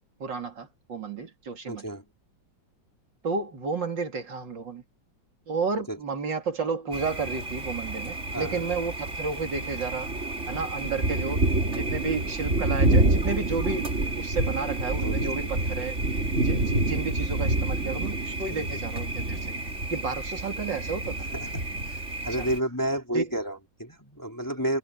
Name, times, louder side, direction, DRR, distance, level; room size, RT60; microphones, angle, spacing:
voice 1, 0.2-1.8 3.2-4.8 5.5-10.1 10.5-11.4 11.8-16.0 16.4-19.4 19.9-21.3 22.4-22.5 23.1-23.3, right 4 dB, 70° right, 3.5 m, -32 dB
voice 2, 1.7-2.0 5.9-6.0 8.3-8.7 15.0-15.5 18.5-18.8 21.3-24.8, right 1 dB, 10° left, 3.3 m, -31 dB
Thunder, 6.9-22.6, right 2 dB, 40° right, 3.1 m, -28 dB
omnidirectional pair, 2.0 m